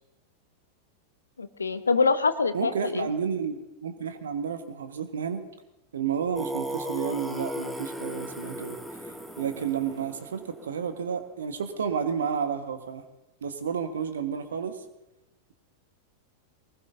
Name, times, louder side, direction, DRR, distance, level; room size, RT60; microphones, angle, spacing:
voice 1, 1.4-3.1, left 4 dB, 75° left, 13 dB, 0.8 m, -25 dB
voice 2, 2.5-5.4 5.9-8.8 9.4-13.0 13.4-14.8, right 7 dB, 65° right, 8 dB, 1.4 m, -31 dB
Singing, 6.4-11.1, equal, 5° right, 1.3 m, -36 dB
22.0 x 20.0 x 2.7 m, 0.94 s
figure-of-eight pair, 90°, 0 cm